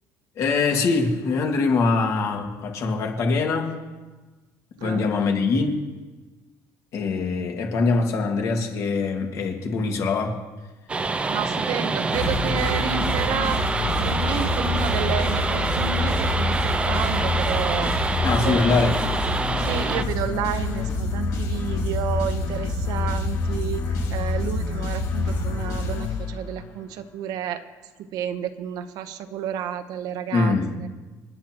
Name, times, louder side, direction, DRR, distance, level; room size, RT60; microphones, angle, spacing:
voice 1, 0.4-3.8 4.8-5.8 6.9-10.4 18.2-19.0 30.3-30.8, left 4 dB, 50° left, 2 dB, 2.0 m, -23 dB
sound 1, 10.9-20.0, right 3 dB, 15° right, 0.5 m, -26 dB
voice 2, 11.3-13.7 14.0-18.1 18.4-18.8 19.6-27.6 28.1-30.6 30.8-30.9, right 9 dB, 65° right, 10 dB, 0.9 m, -31 dB
sound 2, 12.1-26.7, left 3 dB, 65° left, 5.1 m, -27 dB
28.0 x 10.5 x 3.0 m, 1.2 s
cardioid pair, 165°, 7 cm